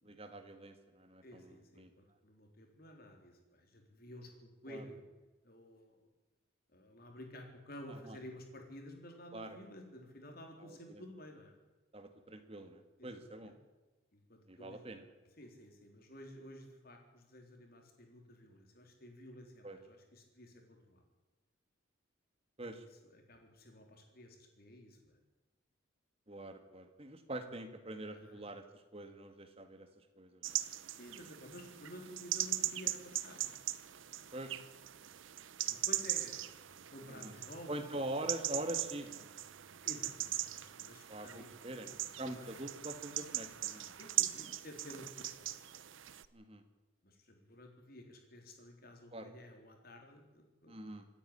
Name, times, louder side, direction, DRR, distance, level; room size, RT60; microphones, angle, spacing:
voice 1, 0.0-1.9 4.7-4.8 7.9-8.2 9.3-9.6 10.6-11.0 11.9-13.5 14.5-15.0 19.6-19.8 22.6-22.8 26.3-30.6 34.3-34.6 37.1-37.3 37.7-39.3 41.1-44.0 46.3-46.6 49.1-49.3 50.7-51.1, right 1 dB, 30° right, 7 dB, 2.0 m, -44 dB
voice 2, 1.2-5.0 5.4-6.1 6.7-11.5 13.0-13.1 13.4-13.5 14.1-14.8 15.4-21.0 23.0-25.2 28.2-28.4 30.5-33.5 35.6-36.6 36.9-37.7 39.8-41.5 42.2-42.4 43.8-45.7 47.0-50.8, left 1 dB, 45° left, 3 dB, 3.9 m, -53 dB
sound 1, 30.4-46.3, right 13 dB, 70° right, 0.8 m, -40 dB
26.0 x 10.0 x 10.0 m, 1.2 s
head